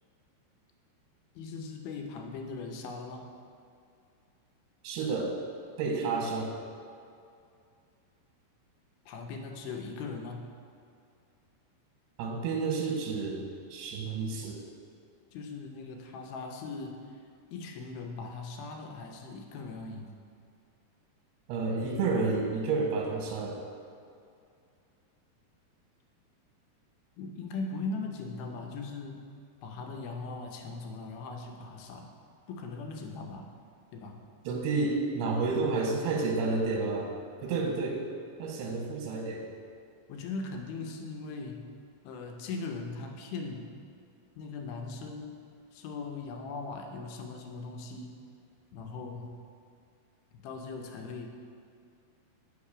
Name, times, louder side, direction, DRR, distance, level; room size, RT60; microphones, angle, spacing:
voice 1, 1.4-3.3 9.1-10.5 15.3-17.0 17.5-20.1 27.2-29.3 29.6-32.1 32.5-33.5 33.9-34.2 40.1-41.7 42.0-43.7 44.4-45.4 45.7-48.2 48.7-49.4 50.4-51.4, left 3 dB, 80° left, 2 dB, 2.4 m, -39 dB
voice 2, 4.8-5.4 5.8-6.6 12.2-14.6 21.5-23.6 34.5-37.1 37.4-38.1 38.4-39.5, right 3 dB, 85° right, 0 dB, 2.8 m, -30 dB
8.7 x 5.3 x 4.8 m, 2.4 s
omnidirectional pair, 4.7 m